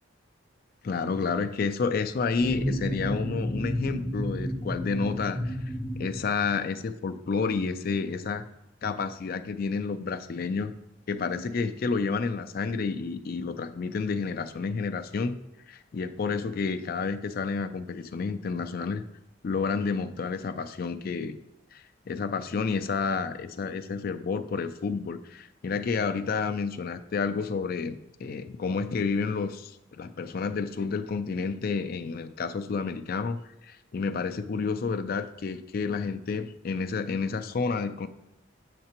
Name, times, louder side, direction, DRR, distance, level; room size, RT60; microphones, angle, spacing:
voice 1, 0.8-5.6 6.0-8.5 8.8-10.7 11.1-15.4 15.7-19.0 19.4-21.4 21.7-38.1, left 4 dB, 45° left, 9 dB, 0.3 m, -30 dB
sound 1, 2.4-6.7, equal, 10° right, 1.4 m, -32 dB
7.5 x 6.6 x 2.9 m, 0.90 s
head